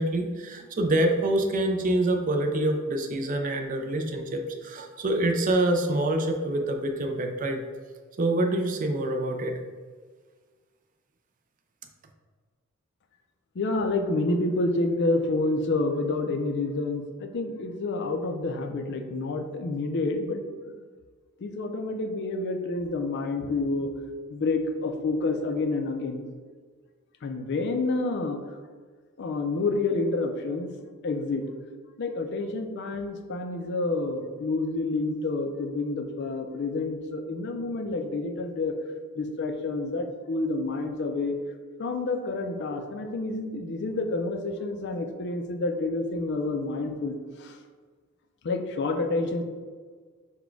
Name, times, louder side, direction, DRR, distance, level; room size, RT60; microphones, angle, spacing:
voice 1, 0.0-7.6 8.2-9.6, right 1 dB, 35° right, 4 dB, 0.4 m, -26 dB
voice 2, 13.6-20.8 21.4-23.9 24.3-26.2 27.2-28.4 29.2-30.7 31.0-31.4 32.0-38.7 39.2-41.4 41.8-47.6 48.4-49.4, left 2 dB, 50° left, 6 dB, 0.4 m, -28 dB
4.1 x 2.2 x 4.4 m, 1.6 s
head